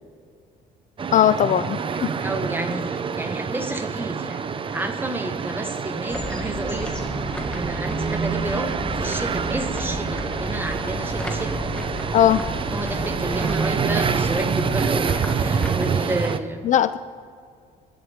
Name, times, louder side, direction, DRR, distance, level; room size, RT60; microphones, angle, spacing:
sound 1, 1.0-16.4, right 6 dB, 30° right, 0.7 m, -27 dB
voice 1, 1.1-2.1 12.1-12.4 16.6-17.0, left 10 dB, 50° left, 13 dB, 0.4 m, -18 dB
voice 2, 1.8-7.0 7.5-11.6 12.7-16.7, right 2 dB, 10° right, 6 dB, 1.4 m, -31 dB
sound 2, 6.1-15.8, left 2 dB, 5° left, 1.9 m, -33 dB
24.5 x 11.5 x 3.6 m, 2.1 s
cardioid pair, 110°, 17 cm